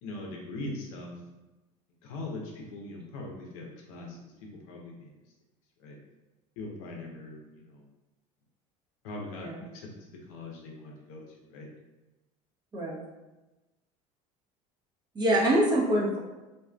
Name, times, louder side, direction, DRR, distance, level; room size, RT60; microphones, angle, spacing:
voice 1, 0.0-1.1 2.0-4.3 4.7-5.1 5.8-6.0 6.6-7.9 9.0-11.2 11.5-11.7, left 2 dB, 80° left, -1 dB, 0.6 m, -41 dB
voice 2, 15.1-16.2, right 1 dB, 25° right, -5 dB, 0.9 m, -25 dB
2.6 x 2.3 x 2.2 m, 1.1 s
supercardioid pair, 85°, 18 cm